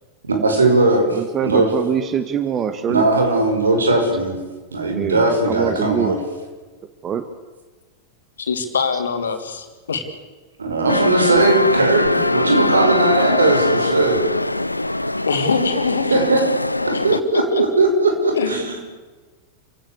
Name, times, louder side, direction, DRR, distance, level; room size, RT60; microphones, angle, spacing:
voice 1, 0.3-1.7 2.9-4.4 4.7-6.2 10.6-14.2 16.1-16.4 17.0-18.8, right 2 dB, 75° right, 3 dB, 5.9 m, -18 dB
voice 2, 1.1-3.0 4.9-6.1 7.0-7.2 8.9-9.0, right 8 dB, 25° right, 10 dB, 1.6 m, -24 dB
voice 3, 8.4-10.0 15.2-16.1 16.9-17.0 17.3-17.6 18.3-18.5, left 5 dB, 70° left, 6 dB, 3.1 m, -23 dB
sound 1, 10.9-17.2, left 2 dB, 85° left, 0.7 m, -21 dB
28.5 x 16.5 x 8.4 m, 1.3 s
figure-of-eight pair, 90°, 0 cm